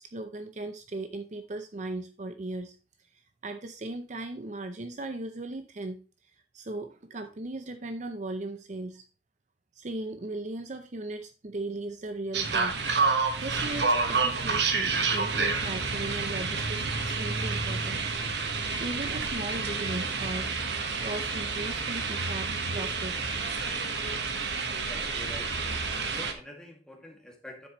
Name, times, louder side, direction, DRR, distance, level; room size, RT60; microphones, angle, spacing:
voice 1, 0.0-2.8 3.4-6.0 6.5-9.0 9.8-12.8 13.4-18.0 18.4-20.5 21.0-23.4, right 2 dB, 40° right, 8 dB, 0.6 m, -37 dB
sound 1, 12.3-26.3, right 4 dB, 65° right, 1.3 m, -29 dB
voice 2, 24.8-25.6 26.1-27.7, equal, 5° left, 0 dB, 2.1 m, -46 dB
9.7 x 7.7 x 3.1 m, 0.33 s
head